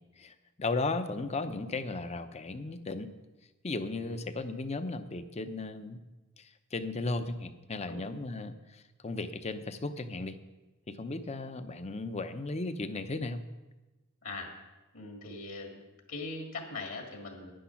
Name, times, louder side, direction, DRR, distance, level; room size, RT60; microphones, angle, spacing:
voice 1, 0.2-3.1 3.6-6.0 6.4-10.4 10.9-13.5, left 3 dB, 30° left, 10 dB, 0.6 m, -36 dB
voice 2, 14.2-14.5 14.9-15.8 16.1-17.5, left 3 dB, 65° left, 1 dB, 1.9 m, -40 dB
10.5 x 10.0 x 5.8 m, 1.1 s
head